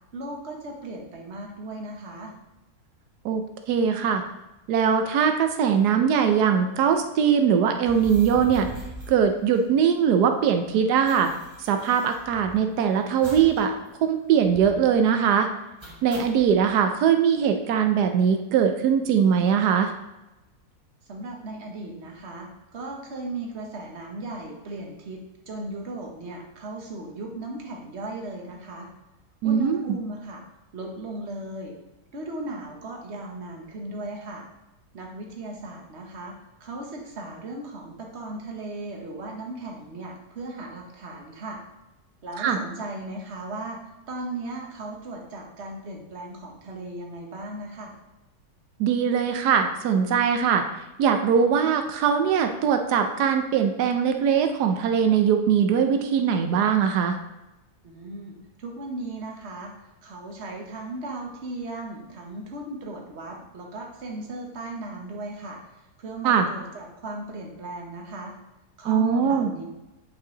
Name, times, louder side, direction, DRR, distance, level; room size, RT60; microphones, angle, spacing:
voice 1, 0.1-2.3 21.1-28.9 29.4-30.4 30.7-31.8 32.1-34.4 34.9-36.3 36.6-41.6 42.2-43.8 44.1-47.9 57.8-65.6 66.0-68.3 68.8-69.6, right 2 dB, 45° right, 0 dB, 1.5 m, -36 dB
voice 2, 3.2-4.2 4.7-8.7 9.1-11.3 11.6-13.7 14.0-15.5 16.0-19.9 29.4-30.0 42.4-42.6 48.8-50.6 51.0-57.2 66.2-66.5 68.8-69.5, right 7 dB, 90° right, 6 dB, 1.3 m, -21 dB
sound 1, 7.8-10.1 10.3-10.4 10.6-12.7 13.2-13.6 13.9-14.0 14.4-14.9 15.8-16.5, right 1 dB, 20° right, 1.2 m, -42 dB
8.7 x 5.5 x 3.9 m, 1.0 s
omnidirectional pair, 1.7 m